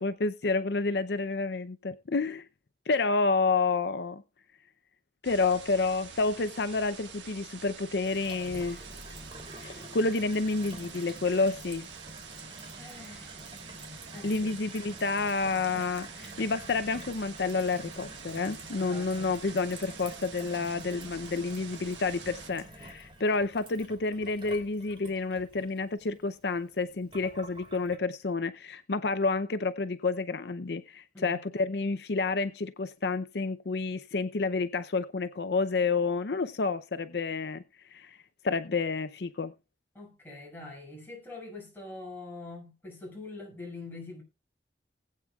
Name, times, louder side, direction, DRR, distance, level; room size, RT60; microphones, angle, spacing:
voice 1, 0.0-2.5 2.9-4.2 5.2-8.8 9.6-11.9 14.2-37.6 37.9-38.2 38.4-39.5, left 3 dB, 65° left, 0.6 m, -29 dB
sound 1, 5.2-22.5, right 6 dB, 85° right, 1.6 m, -47 dB
Gurgling / Water tap faucet / Sink (filling or washing), 8.0-28.0, right 1 dB, 25° right, 2.8 m, -48 dB
voice 2, 12.8-13.5 14.1-14.6 18.8-19.3 31.1-31.4 39.9-44.2, left 2 dB, 10° left, 6.9 m, -44 dB
19.0 x 8.8 x 2.3 m
head